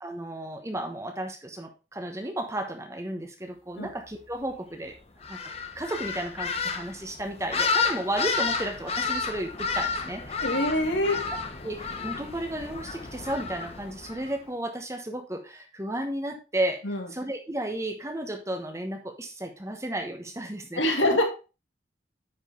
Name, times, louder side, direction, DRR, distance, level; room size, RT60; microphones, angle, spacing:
voice 1, 0.0-5.0 5.3-5.4 5.7-10.5 11.6-16.8 17.1-21.0, right 1 dB, 15° right, 5 dB, 1.1 m, -33 dB
sound 1, 5.2-14.3, left 5 dB, 30° left, 0.9 m, -31 dB
voice 2, 10.4-11.2 16.8-17.1 20.8-21.2, left 1 dB, 85° left, 2 dB, 2.2 m, -24 dB
9.8 x 5.0 x 3.7 m, 0.31 s
head